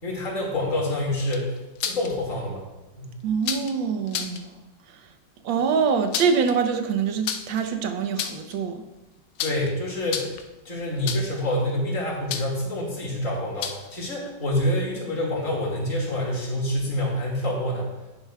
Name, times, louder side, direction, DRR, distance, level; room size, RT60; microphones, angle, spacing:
voice 1, 0.0-2.6 3.0-3.2 9.4-10.3 10.6-17.9, left 1 dB, 45° left, 2.5 m, -27 dB
sound 1, 1.2-2.1 3.4-3.7 4.1-4.4 5.9-6.5 7.2-7.6 8.0-8.6 9.4-9.7 10.0-10.5 11.1-11.4 12.3-12.6 13.6-14.0, left 8 dB, 85° left, 1.4 m, -31 dB
voice 2, 3.2-4.5 4.9-5.0 5.4-8.8, right 6 dB, 85° right, 1.5 m, -24 dB
10.0 x 10.0 x 2.3 m
omnidirectional pair, 2.1 m